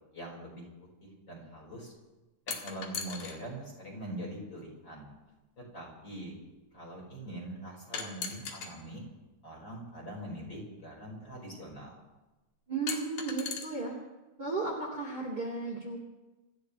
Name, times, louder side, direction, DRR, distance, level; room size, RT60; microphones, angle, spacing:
voice 1, 0.1-0.6 1.0-1.9 2.6-5.1 5.6-6.3 6.7-9.0 9.4-11.9, right 1 dB, 25° left, -2 dB, 5.9 m, -43 dB
sound 1, 2.5-3.4 4.6-4.7 7.9-8.7 10.2-10.3 12.9-13.6, left 6 dB, 50° left, 2.8 m, -37 dB
voice 2, 12.7-14.0 14.4-16.0, right 3 dB, 25° right, -3 dB, 2.7 m, -34 dB
27.0 x 15.0 x 3.4 m, 1.1 s
omnidirectional pair, 4.8 m